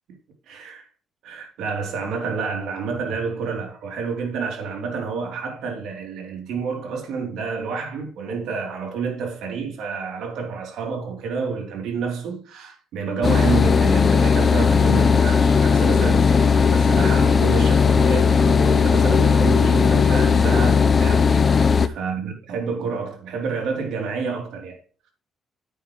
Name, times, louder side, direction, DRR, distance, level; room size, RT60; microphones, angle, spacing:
voice 1, 0.5-0.8 1.2-24.8, right 5 dB, 85° right, 3.3 m, -29 dB
sound 1, 13.2-21.9, left 5 dB, 40° left, 0.7 m, -17 dB
9.9 x 9.0 x 3.2 m
cardioid pair, 90°, 0 cm